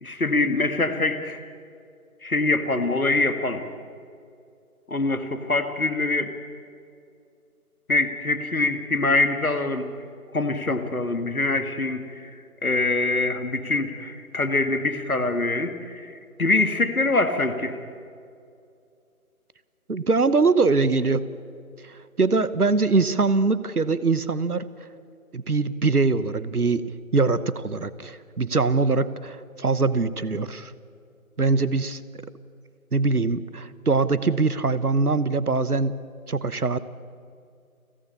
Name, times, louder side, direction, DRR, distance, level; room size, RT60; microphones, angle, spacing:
voice 1, 0.0-1.4 2.2-3.6 4.9-6.3 7.9-9.9 10.3-12.3 12.6-16.1 16.4-17.8, left 2 dB, 70° left, 9 dB, 2.1 m, -24 dB
voice 2, 19.9-21.3 21.8-24.7 25.3-26.8 27.1-30.7 31.4-32.0 32.9-36.0 36.3-36.8, right 3 dB, 85° right, 17 dB, 1.1 m, -22 dB
29.5 x 10.0 x 8.6 m, 2.4 s
figure-of-eight pair, 155°, 44 cm